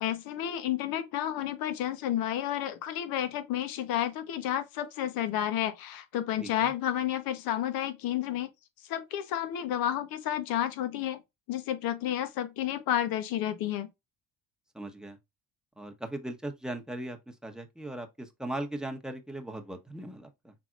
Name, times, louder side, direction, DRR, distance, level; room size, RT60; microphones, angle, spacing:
voice 1, 0.0-8.5 8.9-11.2 11.5-13.9, left 11 dB, 75° left, 1.1 m, -31 dB
voice 2, 6.4-6.7 14.7-15.2 15.8-17.2 17.4-20.5, right 1 dB, ahead, 1.0 m, -38 dB
5.9 x 3.4 x 2.4 m
cardioid pair, 105°, 36 cm